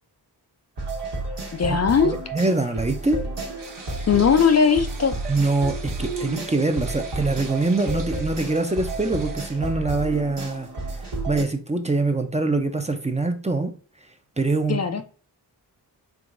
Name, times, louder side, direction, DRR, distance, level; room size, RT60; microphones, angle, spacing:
sound 1, 0.8-11.4, right 2 dB, 80° right, 1.3 m, -31 dB
voice 1, 1.5-2.1 4.1-5.1 14.7-15.0, left 6 dB, 40° left, 0.4 m, -19 dB
voice 2, 2.0-3.2 5.3-10.7 11.3-13.7 14.4-15.0, right 3 dB, 15° right, 0.5 m, -24 dB
sound 2, 3.6-9.4, right 4 dB, 55° right, 0.9 m, -43 dB
4.7 x 3.5 x 2.5 m
wide cardioid pair, 70°, 40 cm